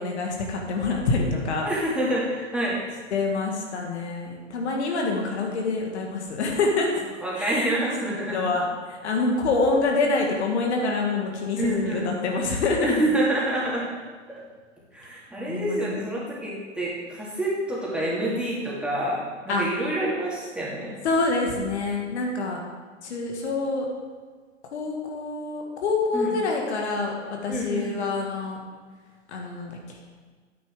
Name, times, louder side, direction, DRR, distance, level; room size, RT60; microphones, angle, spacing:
voice 1, 0.0-1.7 3.1-6.9 7.4-7.7 8.3-12.9 15.5-16.0 19.5-19.6 21.0-22.6 23.0-23.9 24.7-28.6 29.3-30.0, left 3 dB, 60° left, 1 dB, 1.9 m, -26 dB
voice 2, 1.6-2.8 7.2-8.4 11.6-12.1 12.8-13.9 14.3-14.4 14.9-21.0 26.1-26.3 27.5-27.9, right 1 dB, 5° right, -6 dB, 2.5 m, -27 dB
9.8 x 9.1 x 3.7 m, 1.5 s
figure-of-eight pair, 105°, 37 cm